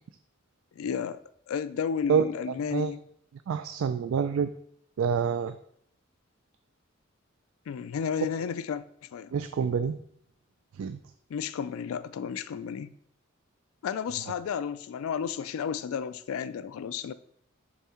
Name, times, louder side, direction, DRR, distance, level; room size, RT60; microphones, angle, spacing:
voice 1, 0.8-1.2 1.5-3.0 7.7-8.8 9.1-9.3 11.3-12.9 13.8-17.1, left 7 dB, 90° left, 0.3 m, -32 dB
voice 2, 3.5-4.5 5.0-5.5 9.3-10.0 10.7-11.0, right 7 dB, 80° right, 0.3 m, -27 dB
7.2 x 3.5 x 4.3 m
head